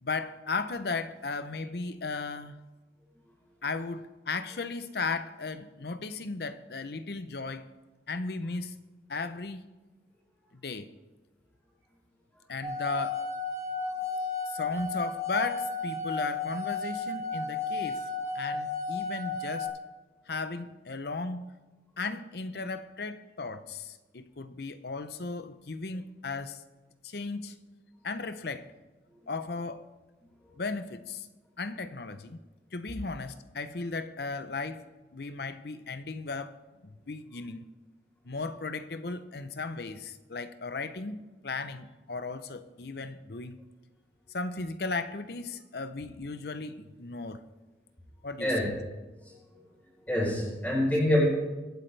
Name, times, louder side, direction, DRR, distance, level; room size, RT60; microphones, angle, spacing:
voice 1, 0.0-2.6 3.6-7.6 8.1-8.7 9.1-9.6 10.6-10.9 12.5-13.2 14.5-18.1 18.3-19.7 20.3-21.5 22.0-26.6 27.0-27.6 28.0-28.7 29.3-29.9 30.6-31.3 31.6-32.4 32.7-34.8 35.1-36.5 36.8-37.6 38.2-43.6 44.3-47.4 48.2-48.7, left 3 dB, 60° left, 12 dB, 0.7 m, -36 dB
sound 1, 12.6-19.7, left 3 dB, 15° right, 2.2 m, -33 dB
voice 2, 50.1-51.3, left 1 dB, 10° left, -5 dB, 3.9 m, -25 dB
23.0 x 8.4 x 3.3 m, 1.2 s
head